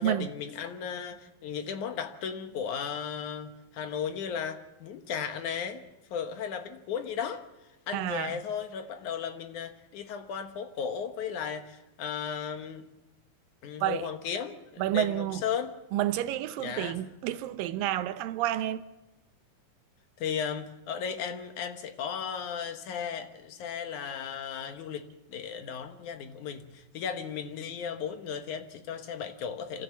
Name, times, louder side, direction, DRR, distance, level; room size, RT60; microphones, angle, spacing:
voice 1, 0.0-5.8 6.1-7.4 7.9-12.9 13.6-15.7 16.6-17.0 20.2-29.8, left 7 dB, 65° left, 2.4 m, -35 dB
voice 2, 7.9-8.4 13.8-14.1 14.8-15.4 15.9-18.8, right 12 dB, 75° right, 2.4 m, -30 dB
26.5 x 14.0 x 7.3 m
omnidirectional pair, 4.2 m